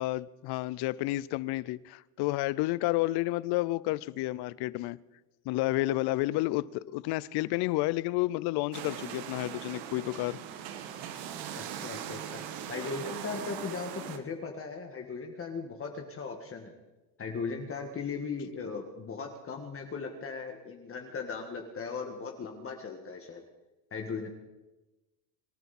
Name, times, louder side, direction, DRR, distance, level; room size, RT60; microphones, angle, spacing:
voice 1, 0.0-5.0 5.5-10.4, left 18 dB, 55° left, 21 dB, 0.7 m, -30 dB
sound 1, 8.7-14.2, right 9 dB, 70° right, 1.7 m, -40 dB
voice 2, 11.6-12.4 12.7-16.7 17.2-23.4 23.9-24.3, left 5 dB, 30° left, 3 dB, 1.7 m, -38 dB
26.5 x 12.5 x 4.3 m, 1.1 s
supercardioid pair, 125°, 46 cm